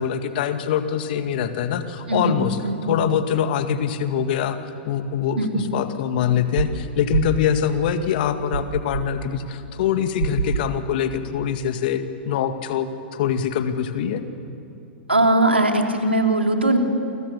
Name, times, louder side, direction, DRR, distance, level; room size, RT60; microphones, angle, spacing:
voice 1, 0.0-4.6 4.9-14.2, left 8 dB, 55° left, 8 dB, 2.1 m, -24 dB
voice 2, 2.1-2.4 2.6-2.8 5.4-5.7 15.1-16.8, right 2 dB, 90° right, 3 dB, 3.1 m, -20 dB
sound 1, 6.6-6.8 7.1-7.4 8.5-9.1 10.2-10.8, right 7 dB, 70° right, 1.2 m, -25 dB
29.0 x 25.0 x 7.0 m, 2.8 s
figure-of-eight pair, 100°, 6 cm